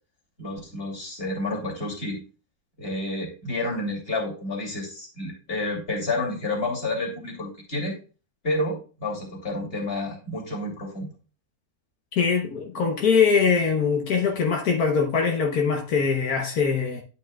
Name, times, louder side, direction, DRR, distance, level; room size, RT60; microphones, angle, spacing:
voice 1, 0.4-2.2 2.8-7.9 8.4-11.1, left 2 dB, 40° left, 3.1 m, -30 dB
voice 2, 12.1-17.0, left 5 dB, 80° left, 1.6 m, -22 dB
11.5 x 5.4 x 2.3 m
omnidirectional pair, 1.6 m